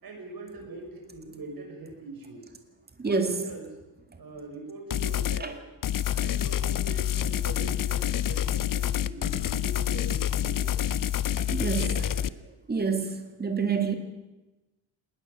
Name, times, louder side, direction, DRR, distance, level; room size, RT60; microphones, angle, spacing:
voice 1, 0.0-2.4 3.0-3.7 4.2-5.6 6.1-10.8 11.7-12.2, right 2 dB, 50° right, 2 dB, 6.1 m, -42 dB
voice 2, 3.0-3.5 5.4-5.5 11.5-11.9 12.7-14.0, right 5 dB, 20° right, 5 dB, 2.1 m, -27 dB
sound 1, 4.9-5.4 5.8-12.3, left 11 dB, 45° left, 0.6 m, -27 dB
20.0 x 19.5 x 6.7 m, 1.0 s
wide cardioid pair, 155°, 45 cm